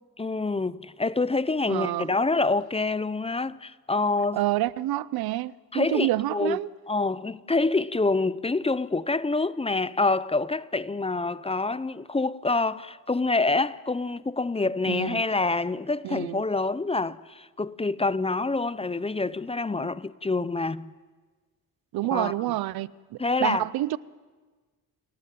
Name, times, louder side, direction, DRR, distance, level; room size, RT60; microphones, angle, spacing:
voice 1, 0.2-4.4 5.7-6.6 6.9-20.9 22.1-22.3 23.2-23.6, left 3 dB, 15° left, 0.7 m, -26 dB
voice 2, 1.7-2.1 4.3-6.7 14.9-15.2 16.0-16.4 21.9-24.0, right 15 dB, 80° right, 0.6 m, -28 dB
29.5 x 14.0 x 9.3 m
cardioid pair, 75°, 36 cm